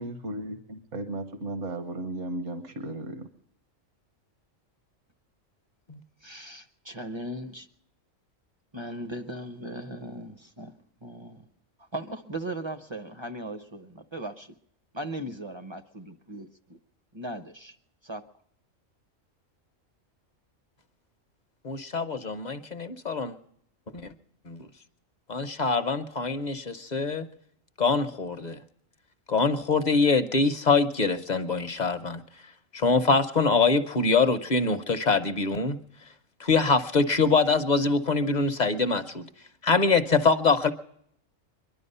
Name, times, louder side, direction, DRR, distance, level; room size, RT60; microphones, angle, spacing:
voice 1, 0.0-3.3, right 1 dB, 70° right, 8 dB, 1.4 m, -35 dB
voice 2, 6.2-7.7 8.7-10.7 11.0-11.4 11.9-14.5 14.9-16.8 17.1-17.8 18.0-18.2, right 1 dB, 30° right, 8 dB, 0.6 m, -38 dB
voice 3, 21.6-23.4 23.9-24.0 24.5-24.7 25.3-27.3 27.8-28.6 29.3-32.2 32.7-35.8 36.4-39.3 39.6-40.7, left 4 dB, 40° left, 9 dB, 0.8 m, -24 dB
23.0 x 11.5 x 5.4 m, 0.73 s
omnidirectional pair, 1.3 m